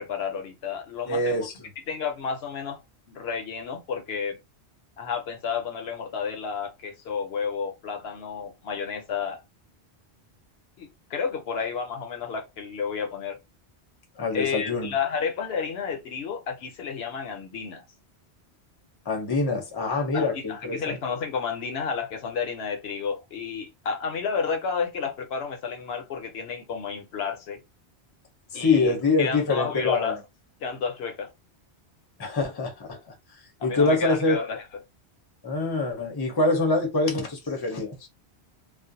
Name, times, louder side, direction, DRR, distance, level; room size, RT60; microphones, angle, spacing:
voice 1, 0.0-1.5 1.9-2.8 3.1-4.4 5.0-9.4 10.8-13.4 14.3-17.8 20.1-27.6 28.5-28.9 29.2-30.2 30.6-31.3 33.6-34.6, left 6 dB, 70° left, 0.8 m, -31 dB
voice 2, 1.1-1.7 14.2-14.9 19.1-21.0 28.5-30.2 32.2-33.0 33.6-34.4 35.4-38.1, left 3 dB, 25° left, 0.6 m, -25 dB
2.4 x 2.0 x 2.6 m
omnidirectional pair, 1.1 m